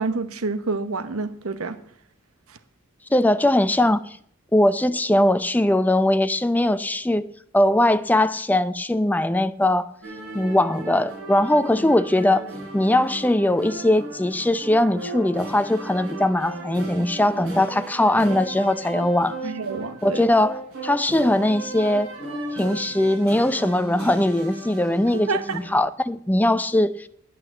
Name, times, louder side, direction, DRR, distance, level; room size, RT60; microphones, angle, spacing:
voice 1, 0.0-1.8 2.5-2.6 19.4-20.3 25.3-25.6, right 4 dB, 90° right, 1.0 m, -28 dB
voice 2, 3.1-4.0 4.5-7.3 7.5-9.9 10.3-12.5 12.7-19.4 20.0-22.1 22.5-25.3 25.5-27.1, left 1 dB, 10° left, 0.5 m, -20 dB
sound 1, 10.0-25.8, right 2 dB, 75° right, 6.7 m, -35 dB
10.5 x 8.9 x 7.8 m
head